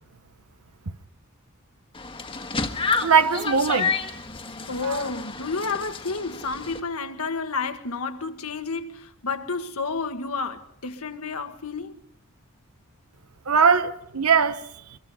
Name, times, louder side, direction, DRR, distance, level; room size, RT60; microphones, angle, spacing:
sound 1, 1.9-6.8, left 5 dB, 25° left, 1.7 m, -30 dB
voice 1, 3.0-3.9 4.8-5.0 13.5-14.6, right 6 dB, 75° right, 1.0 m, -20 dB
voice 2, 4.7-12.0, left 4 dB, 75° left, 1.7 m, -30 dB
25.5 x 22.5 x 5.5 m
head